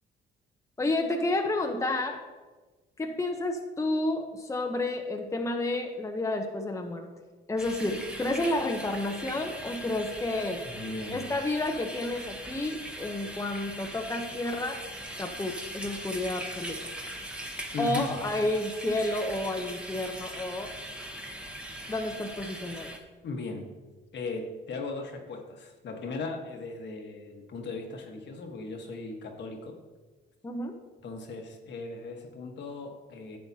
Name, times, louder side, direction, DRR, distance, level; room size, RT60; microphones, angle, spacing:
voice 1, 0.8-2.2 3.0-7.1 7.5-10.6 11.1-14.8 15.2-16.9 17.8-20.7 21.9-22.9 30.4-30.8, left 2 dB, 15° left, 3 dB, 0.8 m, -30 dB
sound 1, 7.6-23.0, right 1 dB, 5° right, 1.1 m, -40 dB
voice 2, 10.7-11.3 17.7-18.1 23.2-23.7 24.1-29.8 31.0-33.4, left 3 dB, 60° left, 3 dB, 1.4 m, -37 dB
10.5 x 7.7 x 2.8 m, 1.3 s
cardioid pair, 90°, 20 cm